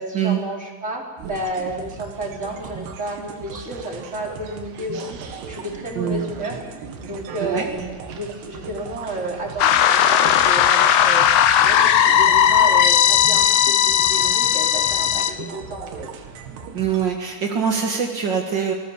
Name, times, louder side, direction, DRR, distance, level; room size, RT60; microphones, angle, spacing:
voice 1, 0.0-6.6 7.0-11.3 11.6-16.1, right 1 dB, 20° right, -1 dB, 3.8 m, -31 dB
sound 1, 1.2-17.0, right 5 dB, 85° right, 3.9 m, -37 dB
voice 2, 5.9-6.3 7.4-7.7 16.7-18.7, right 7 dB, 55° right, 2 dB, 1.3 m, -23 dB
sound 2, 9.6-15.3, left 10 dB, 70° left, 2.0 m, -16 dB
28.5 x 19.0 x 7.2 m, 1.3 s
omnidirectional pair, 4.5 m